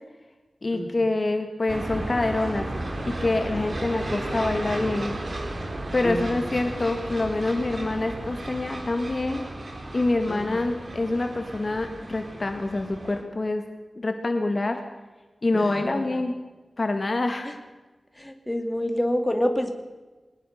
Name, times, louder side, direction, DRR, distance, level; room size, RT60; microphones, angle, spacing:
voice 1, 0.6-2.7 3.1-5.2 5.9-9.5 9.9-13.7 14.0-14.8 15.4-16.3 16.8-17.6, left 2 dB, 40° left, 5 dB, 1.9 m, -26 dB
sound 1, 1.7-13.2, right 1 dB, 45° right, 3.1 m, -34 dB
voice 2, 6.0-6.5 10.3-10.7 15.5-16.2 17.4-17.5 18.1-19.7, equal, 10° left, 5 dB, 2.6 m, -28 dB
22.0 x 19.5 x 6.7 m, 1.2 s
wide cardioid pair, 110°, 0 cm